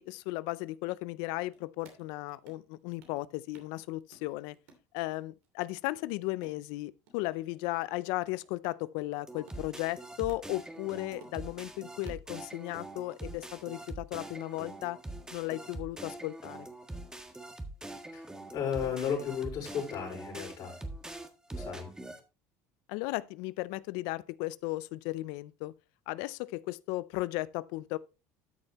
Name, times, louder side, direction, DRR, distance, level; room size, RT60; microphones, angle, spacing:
voice 1, 0.0-4.6 4.9-15.0 15.3-16.7 22.9-25.7 26.1-28.0, left 19 dB, 75° left, 0.5 m, -35 dB
sound 1, 1.3-2.7 3.0-3.9 4.1-5.5 5.8-7.2 7.5-7.6 7.9-10.8 11.1-12.4, right 4 dB, 80° right, 2.8 m, -58 dB
sound 2, 9.3-22.2, right 2 dB, 10° right, 1.6 m, -44 dB
voice 2, 18.1-20.8 21.5-21.9, left 8 dB, 55° left, 4.7 m, -34 dB
12.5 x 6.5 x 3.0 m
supercardioid pair, 95°, 7 cm